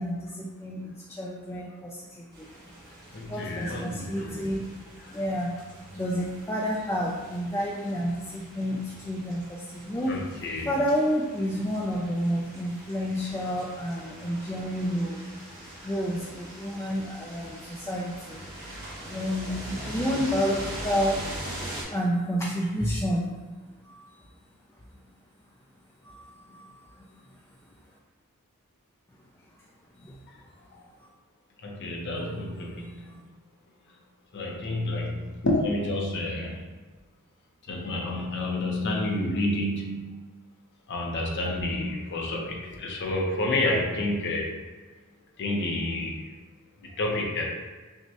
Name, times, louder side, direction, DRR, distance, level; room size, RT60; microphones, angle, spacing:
voice 1, 0.0-2.5 3.2-4.7 5.1-5.7 5.9-10.2 10.5-15.2 15.8-18.4 19.0-21.2 21.9-23.3 23.9-24.1 26.0-26.7 27.0-27.1 30.0-30.1, equal, 10° left, -3 dB, 0.3 m, -30 dB
sound 1, 2.3-21.8, right 1 dB, 50° right, 1.2 m, -42 dB
voice 2, 3.1-4.5 5.0-5.1 10.0-10.7 30.3-30.4 31.6-33.2 34.3-36.6 37.7-40.2 40.9-44.5 45.4-46.3 46.8-47.5, left 1 dB, 55° left, -1 dB, 0.7 m, -29 dB
5.9 x 2.1 x 2.8 m, 1.3 s
head